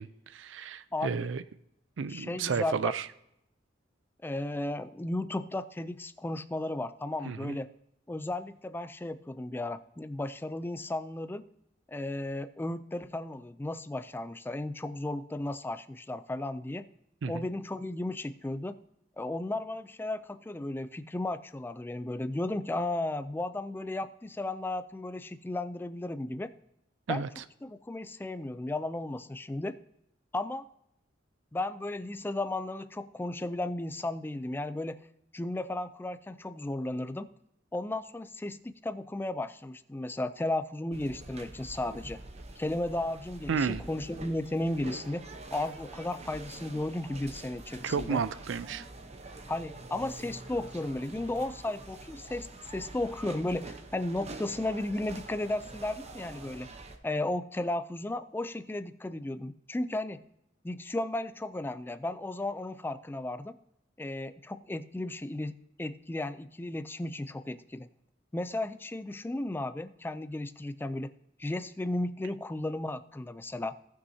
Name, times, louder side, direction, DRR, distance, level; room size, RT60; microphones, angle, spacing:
voice 1, 0.0-1.4 2.0-3.1 7.2-7.6 17.2-17.5 27.1-27.4 43.5-43.9 47.8-48.8, right 5 dB, 70° right, 15 dB, 0.4 m, -32 dB
voice 2, 0.9-1.3 2.1-2.9 4.2-7.7 8.1-11.4 11.9-16.9 17.3-18.8 19.2-26.5 27.1-27.3 27.6-29.7 30.3-30.7 31.5-35.0 35.3-37.3 37.7-42.2 42.6-48.2 49.5-56.7 57.0-60.2 60.6-63.6 64.0-65.5 65.8-67.9 68.3-71.1 71.4-73.7, left 2 dB, 10° left, 13 dB, 0.3 m, -34 dB
sound 1, 40.9-57.0, right 2 dB, 35° right, 0.8 m, -46 dB
17.5 x 6.2 x 2.7 m, 0.81 s
head